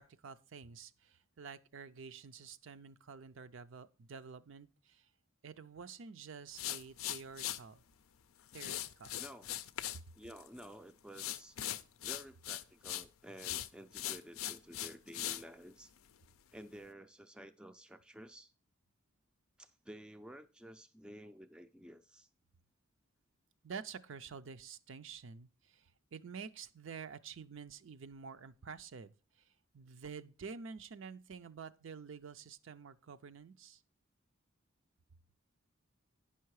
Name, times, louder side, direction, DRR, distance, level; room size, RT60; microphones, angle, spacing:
voice 1, 0.0-5.1 5.4-7.8 8.5-9.2 23.6-33.8, right 5 dB, 65° right, 0.5 m, -49 dB
sound 1, 6.5-7.6 8.5-10.0 10.3-10.7 11.1-13.1 13.4-15.4, left 13 dB, 80° left, 0.5 m, -40 dB
voice 2, 9.2-9.5 10.1-11.6 12.0-15.9 16.5-18.5 19.6-22.3, equal, 5° right, 0.4 m, -52 dB
9.5 x 5.6 x 4.7 m
head